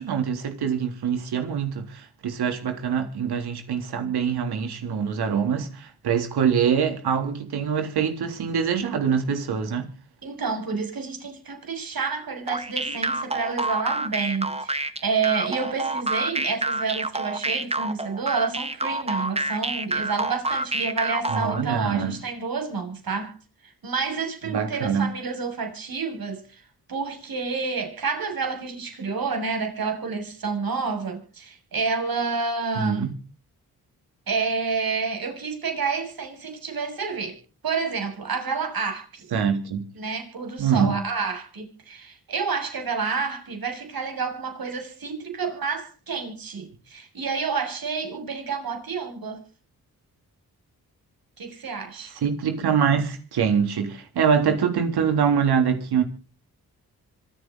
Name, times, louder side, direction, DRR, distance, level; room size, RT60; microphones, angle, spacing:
voice 1, 0.0-9.9 21.3-22.1 24.5-25.1 32.8-33.1 39.3-39.8 40.6-41.0 52.2-56.0, right 7 dB, 80° right, 3.6 m, -24 dB
voice 2, 10.2-23.4 23.6-26.6 26.9-33.1 34.3-37.4 37.6-39.3 39.9-49.4 51.4-52.1, right 5 dB, 65° right, 7.3 m, -29 dB
sound 1, 12.5-21.6, right 2 dB, 15° right, 1.8 m, -28 dB
26.0 x 9.4 x 4.2 m
supercardioid pair, 40°, 38 cm